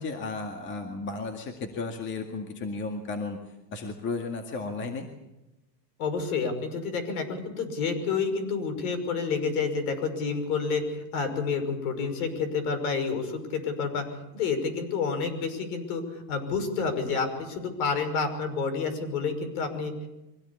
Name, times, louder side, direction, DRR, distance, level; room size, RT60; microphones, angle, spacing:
voice 1, 0.0-5.1, left 3 dB, 25° left, 4 dB, 2.1 m, -34 dB
voice 2, 6.0-14.1 14.3-20.1, left 5 dB, 60° left, 9 dB, 5.8 m, -29 dB
24.0 x 17.0 x 8.6 m, 0.98 s
supercardioid pair, 155°, 49 cm